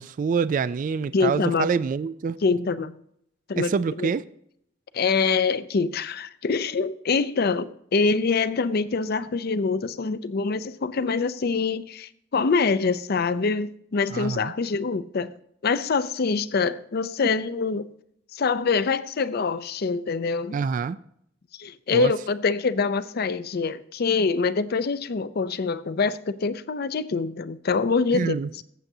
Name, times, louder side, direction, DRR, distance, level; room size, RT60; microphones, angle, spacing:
voice 1, 0.0-2.4 3.6-4.2 14.1-14.5 20.5-21.0 21.9-22.1 28.1-28.6, right 5 dB, 45° right, 0.3 m, -26 dB
voice 2, 1.1-1.7 2.4-2.9 3.5-4.1 4.9-15.3 15.6-17.9 18.3-20.6 21.6-28.6, left 4 dB, 55° left, 0.5 m, -25 dB
14.5 x 7.8 x 2.7 m
head